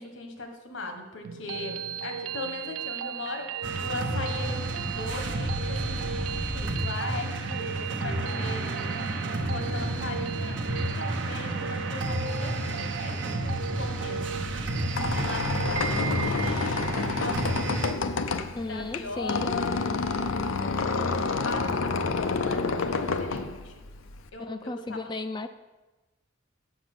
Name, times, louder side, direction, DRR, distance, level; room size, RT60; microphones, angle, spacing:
voice 1, 0.0-14.4 14.9-16.9 17.1-17.8 18.6-19.8 20.4-23.8 24.3-25.1, left 2 dB, 75° left, 5 dB, 1.3 m, -39 dB
sound 1, 1.2-17.2, right 7 dB, 80° right, 0.4 m, -37 dB
sound 2, 3.6-17.9, right 1 dB, 65° right, 0.9 m, -31 dB
Squeak, 14.7-24.3, left 4 dB, 90° left, 0.6 m, -29 dB
voice 2, 18.6-19.5 24.5-25.5, left 3 dB, 20° left, 9 dB, 0.4 m, -34 dB
7.3 x 7.2 x 6.1 m, 1.1 s
head